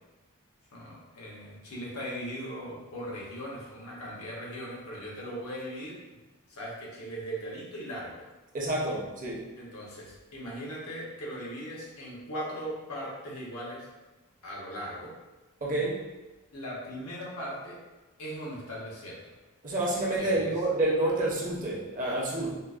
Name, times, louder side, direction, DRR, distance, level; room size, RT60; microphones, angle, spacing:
voice 1, 0.7-6.0 6.5-8.2 9.6-13.9 14.4-15.1 16.5-17.8 18.2-19.2 20.2-20.5, equal, 75° left, -4 dB, 0.8 m, -39 dB
voice 2, 8.5-9.4 15.6-16.0 19.6-22.6, right 2 dB, 35° right, -4 dB, 0.6 m, -28 dB
3.9 x 2.0 x 2.4 m, 1.1 s
head